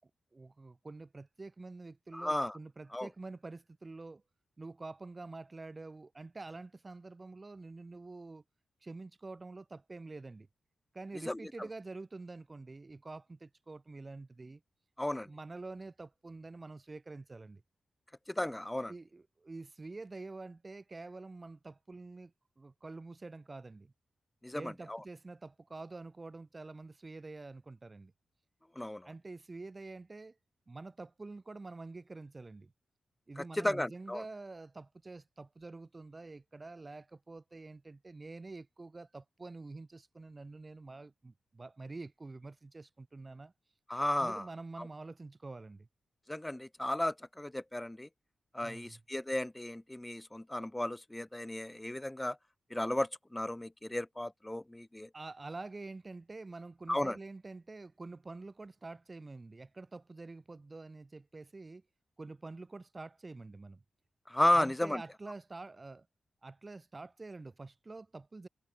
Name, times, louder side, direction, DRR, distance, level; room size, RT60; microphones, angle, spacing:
voice 1, 0.0-4.2 4.6-8.4 8.8-10.5 10.9-14.6 15.3-17.6 18.9-23.9 24.5-28.1 29.0-30.4 30.7-32.7 33.3-43.5 44.2-45.9 48.6-49.0 55.1-61.8 62.2-63.8 64.5-66.1 66.4-68.5, right 3 dB, 35° right, 4.8 m, -47 dB
voice 2, 2.1-2.6 2.9-3.1 11.3-11.5 15.0-15.3 18.3-18.9 24.4-25.0 28.8-29.1 33.4-34.2 43.9-44.5 44.8-44.9 46.3-48.1 48.5-52.4 52.7-55.1 56.9-57.2 64.3-65.0, left 1 dB, 15° left, 0.7 m, -34 dB
cardioid pair, 55°, 0 cm